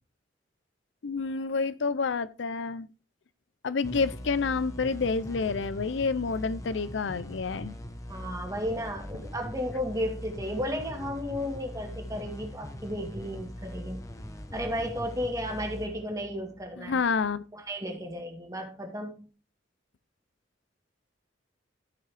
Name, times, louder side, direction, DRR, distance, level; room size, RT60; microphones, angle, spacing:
voice 1, 1.0-2.9 3.6-7.7 16.8-17.4, left 4 dB, 70° left, 0.5 m, -29 dB
sound 1, 3.8-17.1, equal, 15° left, 1.0 m, -41 dB
voice 2, 8.1-14.1 14.5-17.0 17.5-19.3, equal, 20° right, 2.0 m, -34 dB
14.5 x 5.5 x 3.3 m
head